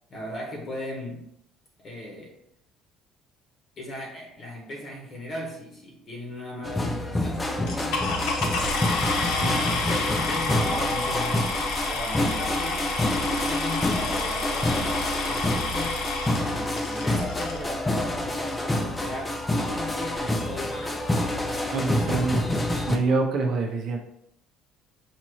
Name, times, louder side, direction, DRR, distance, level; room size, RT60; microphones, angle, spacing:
voice 1, 0.1-1.3 1.8-2.4 3.8-8.5 9.9-14.9 15.2-21.9, left 1 dB, 30° left, -1 dB, 0.9 m, -38 dB
sound 1, 6.6-23.0, left 1 dB, 10° left, 0.4 m, -27 dB
sound 2, 7.7-17.6 18.4-18.5 19.0-19.1 19.3-19.6, left 3 dB, 75° left, 0.8 m, -29 dB
voice 2, 21.7-22.4 22.9-24.0, right 3 dB, 40° right, 3 dB, 0.7 m, -26 dB
5.9 x 2.8 x 3.0 m, 0.75 s
cardioid pair, 165°, 0 cm